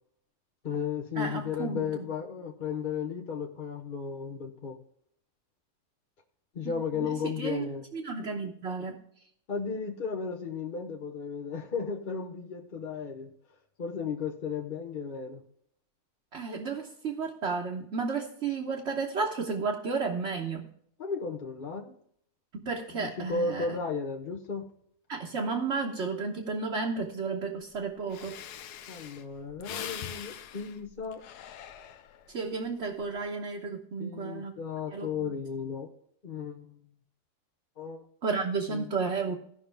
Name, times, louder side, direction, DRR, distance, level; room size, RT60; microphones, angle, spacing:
voice 1, 0.6-4.8 6.5-7.9 9.5-13.3 13.8-15.4 21.0-22.0 23.0-24.7 28.9-31.2 34.0-35.9 36.2-36.8 37.8-38.0 38.7-38.9, left 5 dB, 40° left, 2 dB, 0.8 m, -34 dB
voice 2, 1.2-2.0 6.6-7.7 7.9-9.0 16.3-20.6 22.5-23.8 25.1-28.4 32.3-34.5 34.9-35.3 38.2-39.4, right 4 dB, 50° right, -1 dB, 1.3 m, -32 dB
Breathing, 27.8-27.9 28.1-32.3 32.8-33.2, left 9 dB, 80° left, 1.2 m, -43 dB
17.0 x 5.7 x 3.4 m, 0.68 s
omnidirectional pair, 1.7 m